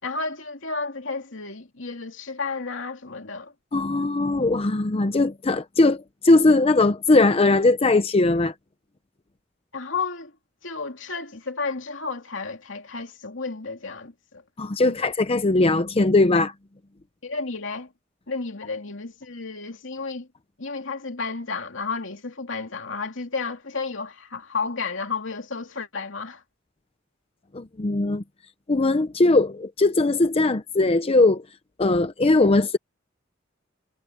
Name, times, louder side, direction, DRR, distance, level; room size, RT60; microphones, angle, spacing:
voice 1, 0.0-3.5 9.7-10.3 10.6-14.4 14.9-15.0 17.2-17.9 18.3-20.3 20.6-26.4, left 4 dB, 75° left, 2.8 m, -32 dB
voice 2, 3.7-8.5 14.6-16.5 27.5-28.2 28.7-31.4 31.8-32.8, left 2 dB, 30° left, 0.6 m, -20 dB
head